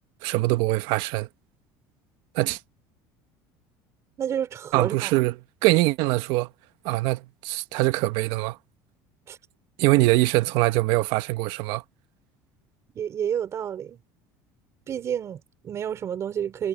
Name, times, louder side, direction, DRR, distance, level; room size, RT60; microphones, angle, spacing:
voice 1, 0.2-1.3 2.3-2.6 4.7-6.5 6.8-8.6 9.8-11.8, right 19 dB, 70° right, 1.3 m, -23 dB
voice 2, 4.2-5.1 9.3-9.4 12.9-14.0 14.9-16.7, right 9 dB, 35° right, 4.8 m, -30 dB
cardioid pair, 135°, 8 cm